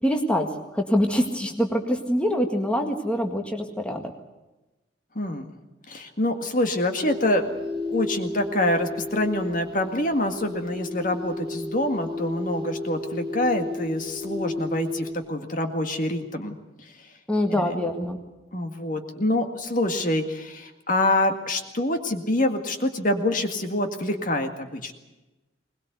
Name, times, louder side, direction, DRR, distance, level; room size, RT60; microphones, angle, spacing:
voice 1, 0.0-4.1 17.3-18.2, equal, 5° left, 3 dB, 1.8 m, -25 dB
voice 2, 5.2-5.5 5.9-7.6 7.9-16.6 17.5-17.7 18.5-24.9, left 1 dB, 45° left, 6 dB, 1.9 m, -26 dB
sound 1, 7.0-15.1, left 2 dB, 25° right, 5.8 m, -33 dB
21.5 x 20.5 x 8.2 m, 1.0 s
head